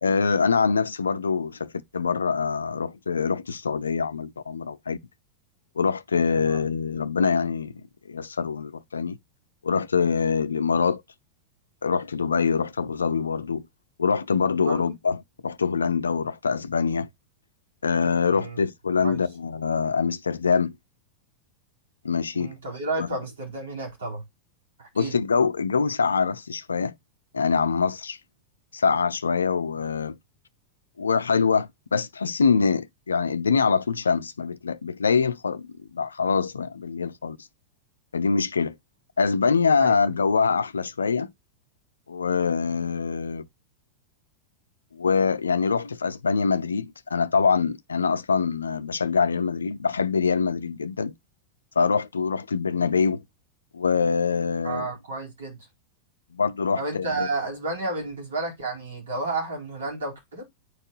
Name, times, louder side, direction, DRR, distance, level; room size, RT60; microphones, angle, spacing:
voice 1, 0.0-5.0 5.8-7.7 8.1-9.2 9.6-11.0 11.8-13.6 14.0-17.1 17.8-20.8 22.0-22.5 23.0-23.1 24.9-26.9 27.3-28.2 28.7-30.2 31.0-37.4 38.1-38.7 39.2-41.3 42.1-43.4 44.9-51.1 51.8-53.2 53.7-54.9 56.3-57.3, left 5 dB, 75° left, 0.4 m, -24 dB
voice 2, 22.3-24.2 24.8-25.2 39.8-39.9 54.6-55.6 56.8-60.4, right 2 dB, 65° right, 4.4 m, -31 dB
9.5 x 4.3 x 3.1 m
figure-of-eight pair, 90°, 0 cm